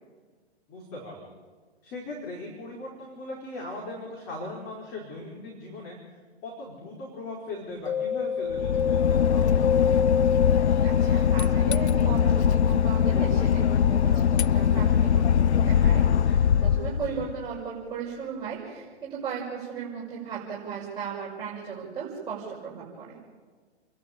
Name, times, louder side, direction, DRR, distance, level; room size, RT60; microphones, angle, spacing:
voice 1, 0.7-1.3 1.8-6.0 6.4-9.8 17.0-17.2, left 2 dB, 30° left, -1 dB, 5.0 m, -39 dB
Mallet percussion, 7.9-17.4, left 6 dB, 65° left, 2.0 m, -30 dB
Boat Water vehicle / Engine, 8.5-17.5, left 8 dB, 85° left, 0.6 m, -22 dB
voice 2, 10.8-23.2, right 6 dB, 15° right, -8 dB, 6.3 m, -36 dB
29.0 x 12.0 x 8.8 m, 1.5 s
hypercardioid pair, 130°, 33 cm